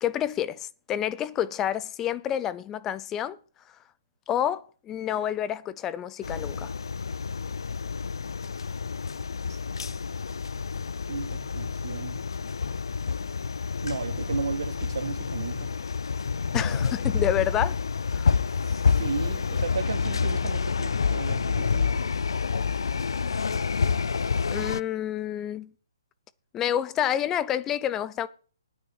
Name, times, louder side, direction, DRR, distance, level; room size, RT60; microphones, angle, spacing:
voice 1, 0.0-3.4 4.3-6.7 16.5-17.8 18.1-18.3 24.5-25.7 26.5-28.3, left 10 dB, 10° left, 0.4 m, -29 dB
sound 1, 6.2-24.8, left 5 dB, 90° left, 0.4 m, -28 dB
voice 2, 11.1-12.2 13.8-15.7 18.6-22.0, right 5 dB, 65° right, 2.1 m, -34 dB
9.5 x 6.1 x 8.0 m
hypercardioid pair, 165°, 2 cm